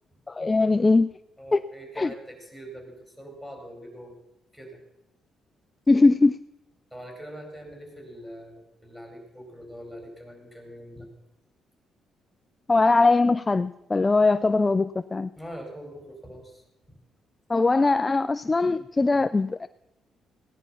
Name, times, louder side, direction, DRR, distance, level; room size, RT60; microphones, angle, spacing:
voice 1, 0.3-1.1 1.5-1.6 2.0-2.1 5.9-6.4 12.7-15.3 17.5-19.7, left 3 dB, 25° left, 0.4 m, -21 dB
voice 2, 1.4-4.1 4.5-4.8 6.9-11.1 15.3-16.6 16.9-17.0, equal, 5° right, 4.9 m, -43 dB
16.0 x 10.0 x 5.7 m
cardioid pair, 90°, 0 cm